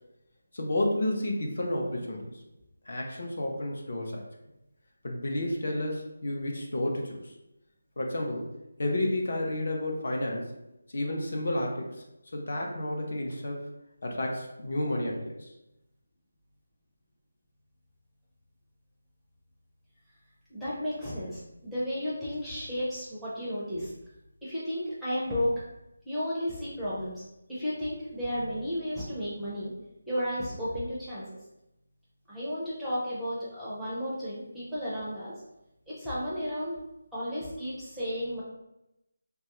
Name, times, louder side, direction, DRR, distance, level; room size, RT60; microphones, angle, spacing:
voice 1, 0.5-2.3 2.9-4.2 5.0-7.3 8.0-8.5 8.8-10.5 10.9-12.0 12.3-13.6 14.0-15.5, left 1 dB, 50° left, 0 dB, 0.6 m, -31 dB
voice 2, 20.5-23.9 24.4-25.6 26.1-27.2 27.5-29.7 30.1-31.2 32.3-35.3 35.9-36.8 37.1-38.4, equal, ahead, -11 dB, 0.5 m, -33 dB
3.1 x 2.3 x 2.9 m, 0.90 s
figure-of-eight pair, 175°, 0 cm